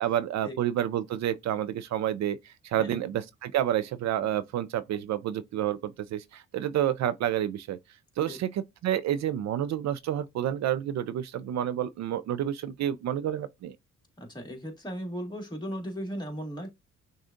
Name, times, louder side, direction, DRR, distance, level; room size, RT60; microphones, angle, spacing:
voice 1, 0.0-7.8 8.2-13.8, right 11 dB, 65° right, 0.5 m, -29 dB
voice 2, 2.8-3.1 8.3-8.4 14.2-16.7, equal, 15° left, 1.9 m, -37 dB
6.2 x 2.3 x 2.5 m
cardioid pair, 90°, 30 cm